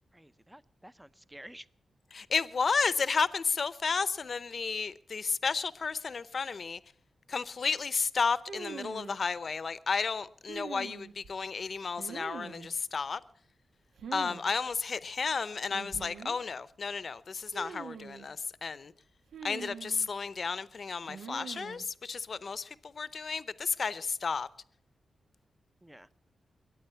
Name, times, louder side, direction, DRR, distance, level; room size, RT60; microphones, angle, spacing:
voice 1, 0.1-1.7 25.8-26.1, right 1 dB, 5° right, 0.6 m, -51 dB
voice 2, 2.1-6.8 7.3-13.2 14.1-18.9 19.4-24.5, left 5 dB, 55° left, 0.7 m, -32 dB
sound 1, 8.5-9.2 10.5-11.3 12.0-12.7 14.0-14.4 14.7-14.8 15.7-16.4 17.5-18.3 19.3-20.1 21.1-21.8, right 6 dB, 85° right, 1.1 m, -43 dB
22.5 x 9.2 x 5.7 m
cardioid pair, 90°, 0 cm